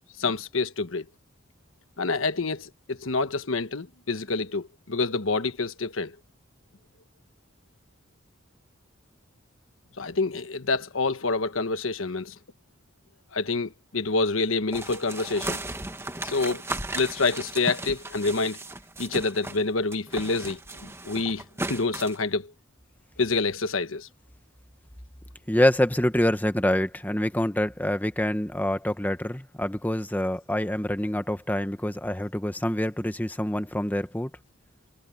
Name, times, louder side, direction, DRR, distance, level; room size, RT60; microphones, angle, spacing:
voice 1, 0.2-1.1 2.0-6.1 10.0-12.3 13.3-15.6 16.2-16.6 16.9-18.6 19.0-21.4 21.7-22.5 23.2-24.1, left 3 dB, 85° left, 1.2 m, -27 dB
sound 1, 14.7-19.6 19.9-22.2, right 2 dB, 15° right, 1.8 m, -36 dB
voice 2, 25.5-34.3, left 1 dB, 10° left, 1.3 m, -26 dB
head